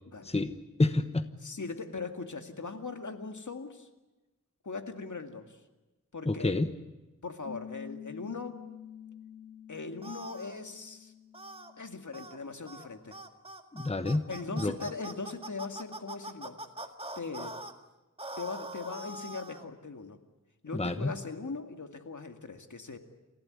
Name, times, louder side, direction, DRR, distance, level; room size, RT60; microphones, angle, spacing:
voice 1, 0.2-1.3 6.3-6.7 13.7-14.3 14.5-14.8 20.7-21.1, left 2 dB, 20° left, 10 dB, 1.1 m, -28 dB
voice 2, 1.4-3.9 4.6-5.6 6.1-6.6 7.2-8.6 9.7-11.1 11.8-13.2 14.3-16.6 17.2-17.6 18.4-20.2 20.6-23.0, left 4 dB, 65° left, 6 dB, 2.3 m, -40 dB
Piano, 7.5-12.6, left 8 dB, 50° left, 3.6 m, -48 dB
sound 1, 10.0-10.6 11.3-11.7 12.1-12.4 12.7-12.9 13.1-17.7 18.2-19.7, right 1 dB, 15° right, 1.9 m, -43 dB
29.0 x 16.0 x 9.7 m, 1.1 s
wide cardioid pair, 75°, 32 cm